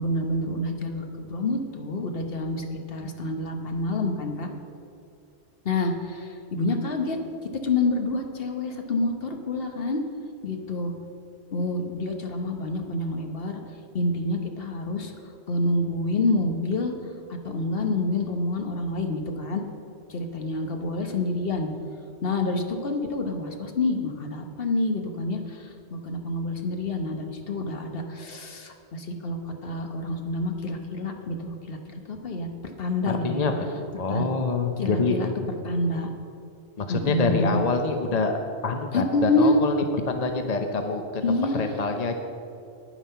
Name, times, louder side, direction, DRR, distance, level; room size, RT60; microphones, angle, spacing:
voice 1, 0.0-4.5 5.6-7.2 7.6-10.0 10.4-10.9 11.5-13.6 13.9-15.1 15.5-16.9 17.4-19.6 20.1-21.7 22.2-32.5 32.8-33.5 34.1-34.3 34.8-35.3 35.6-36.1 36.9-37.6 38.9-39.6 41.2-41.8, left 2 dB, 60° left, 4 dB, 1.2 m, -27 dB
voice 2, 33.1-33.5 34.0-35.2 36.8-41.2 41.6-42.1, left 4 dB, 40° left, 5 dB, 0.7 m, -26 dB
9.9 x 9.2 x 5.7 m, 2.6 s
omnidirectional pair, 1.2 m